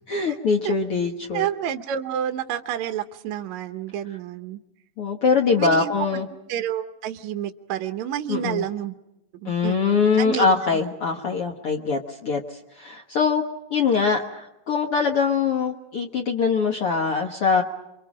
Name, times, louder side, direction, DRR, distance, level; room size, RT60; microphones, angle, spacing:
voice 1, 0.1-1.5 5.0-6.3 8.3-8.6 9.4-13.4 13.7-17.6, left 5 dB, 55° left, 2 dB, 1.8 m, -23 dB
voice 2, 1.3-4.6 5.6-5.9 6.5-8.9 9.4-10.5, right 10 dB, 65° right, 6 dB, 2.0 m, -29 dB
29.5 x 24.5 x 5.0 m, 0.92 s
omnidirectional pair, 4.0 m